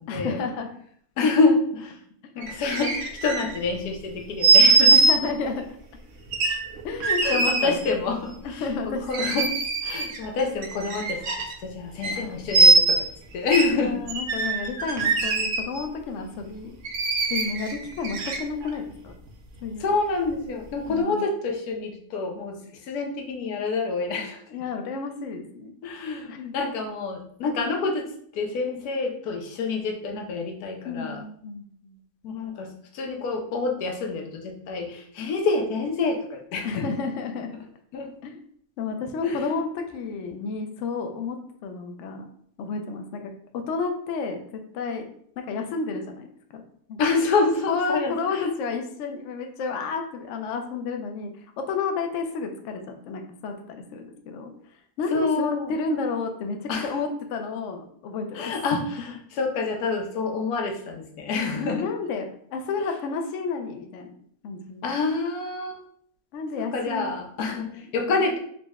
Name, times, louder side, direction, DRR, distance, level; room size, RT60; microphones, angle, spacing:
voice 1, 0.1-0.7 4.9-5.6 6.8-7.8 8.4-9.4 12.0-12.4 13.7-16.8 17.3-19.1 19.6-19.8 20.9-21.3 24.5-25.7 26.3-26.7 30.8-32.0 36.6-37.5 38.2-38.4 38.8-42.2 42.6-45.1 45.4-46.3 46.5-46.6 46.9-47.0 47.7-51.3 51.6-54.5 55.0-58.8 61.3-64.1 64.4-64.8 66.3-67.1 67.8-68.3, left 4 dB, 70° left, 5 dB, 0.8 m, -31 dB
voice 2, 1.2-2.0 2.4-5.3 7.2-9.5 9.8-13.1 13.3-14.0 19.8-24.4 25.8-28.1 28.3-31.2 32.2-36.9 37.9-38.1 39.2-39.5 47.0-48.5 55.1-55.7 56.7-57.0 58.3-61.9 64.8-65.8 66.6-68.4, left 3 dB, 85° left, 3 dB, 1.1 m, -27 dB
sound 1, 2.4-3.7 4.4-5.2 6.3-7.7 9.1-10.2 10.6-11.5 12.0-12.2 12.5-13.0 13.5-13.6 14.1-15.8 16.8-18.7 19.3-19.4, right 3 dB, 65° right, 0.8 m, -21 dB
3.8 x 2.1 x 3.4 m, 0.64 s
omnidirectional pair, 1.6 m